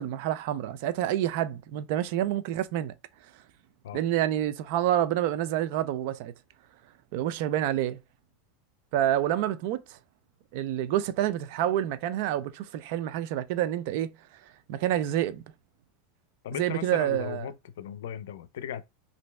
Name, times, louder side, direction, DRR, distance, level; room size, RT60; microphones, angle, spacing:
voice 1, 0.0-2.9 3.9-6.3 7.1-8.0 8.9-10.0 10.5-14.2 14.4-15.4 16.5-17.4, right 12 dB, 60° right, 0.4 m, -28 dB
voice 2, 16.4-18.8, left 10 dB, 85° left, 0.5 m, -37 dB
3.0 x 2.6 x 3.3 m
supercardioid pair, 130°, 0 cm